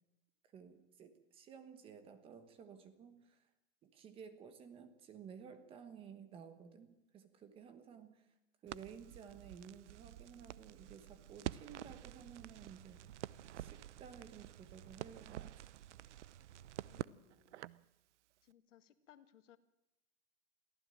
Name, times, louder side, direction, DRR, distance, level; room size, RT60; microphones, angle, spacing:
voice 1, 0.5-3.5 3.8-8.3 8.6-13.0 13.5-15.7, right 7 dB, 15° right, 10 dB, 1.3 m, -55 dB
Crackle, 8.7-17.9, right 13 dB, 75° right, 0.7 m, -49 dB
voice 2, 16.9-17.6 18.4-19.6, left 11 dB, 85° left, 11 dB, 1.9 m, -65 dB
23.5 x 15.0 x 9.1 m, 0.91 s
supercardioid pair, 170°, 36 cm